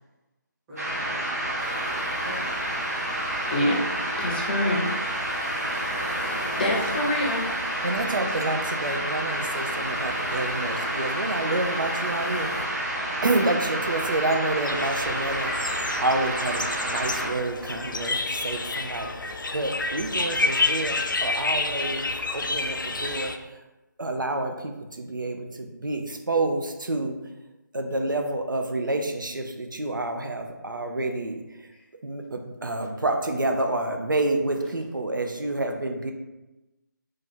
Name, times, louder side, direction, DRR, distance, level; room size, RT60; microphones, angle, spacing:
voice 1, 0.7-3.1, equal, 15° right, -8 dB, 0.8 m, -44 dB
sound 1, 0.8-17.3, right 1 dB, 55° right, 0.9 m, -29 dB
sound 2, 1.6-12.7, left 1 dB, 65° left, 0.8 m, -42 dB
voice 2, 3.4-3.8 4.2-4.9 5.7-7.5, left 1 dB, 25° left, -3 dB, 0.6 m, -27 dB
voice 3, 7.8-12.5 13.2-15.5 16.0-23.3 24.0-27.2 27.7-31.4 32.0-36.1, right 2 dB, 80° right, 4 dB, 0.5 m, -28 dB
sound 3, 14.6-23.4, left 3 dB, 80° left, 0.4 m, -29 dB
3.2 x 2.4 x 4.2 m, 1.0 s
figure-of-eight pair, 155°, 11 cm